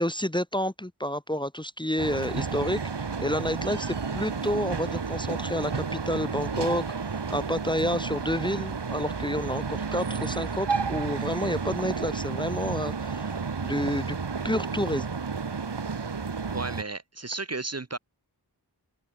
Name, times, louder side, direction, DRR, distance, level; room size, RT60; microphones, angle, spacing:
voice 1, 0.0-6.8 7.3-13.3 13.6-14.2 14.4-15.1, left 1 dB, 10° left, 1.2 m, -29 dB
sound 1, 2.0-16.8, right 5 dB, 85° right, 2.4 m, -31 dB
voice 2, 16.5-18.0, right 3 dB, 40° right, 1.6 m, -33 dB
wide cardioid pair, 70°, 40 cm